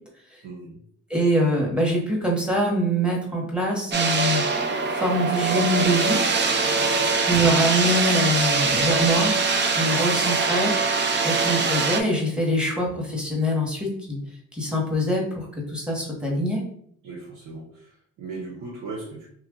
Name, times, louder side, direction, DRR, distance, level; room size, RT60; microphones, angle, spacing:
voice 1, 0.4-0.8 6.7-7.1 17.0-19.3, right 3 dB, 80° right, -5 dB, 0.9 m, -38 dB
voice 2, 1.1-4.4 4.9-6.2 7.2-9.3 9.7-10.7 11.2-14.2 14.5-16.6, equal, 5° right, -2 dB, 1.1 m, -24 dB
sound 1, 3.9-12.0, right 4 dB, 35° right, 0.5 m, -23 dB
3.0 x 2.4 x 3.7 m, 0.65 s
cardioid pair, 90°, 30 cm